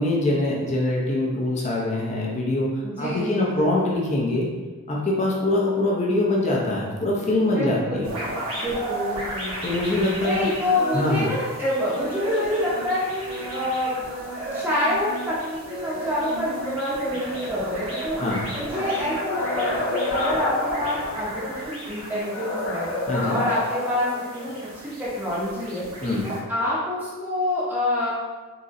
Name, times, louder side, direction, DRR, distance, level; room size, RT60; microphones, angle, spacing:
voice 1, 0.0-4.5 4.9-8.1 9.6-10.5 10.9-11.3 18.2-18.4 23.1-23.4 26.0-26.3, left 1 dB, 30° left, -3 dB, 0.6 m, -23 dB
voice 2, 2.8-3.8 7.5-8.1 8.5-9.5 10.2-14.0 14.5-18.2 18.6-22.9 23.3-25.9 26.2-28.1, left 1 dB, 10° right, -9 dB, 0.7 m, -27 dB
sound 1, 8.0-26.4, right 1 dB, 75° right, 1.0 m, -36 dB
sound 2, 10.7-11.2 11.6-13.8 14.0-21.3 21.6-21.9 22.4-22.5 22.8-22.9, right 1 dB, 35° right, 1.0 m, -35 dB
sound 3, 19.2-21.7 22.3-24.7, left 2 dB, 70° left, 0.6 m, -29 dB
3.9 x 2.9 x 2.5 m, 1.3 s
head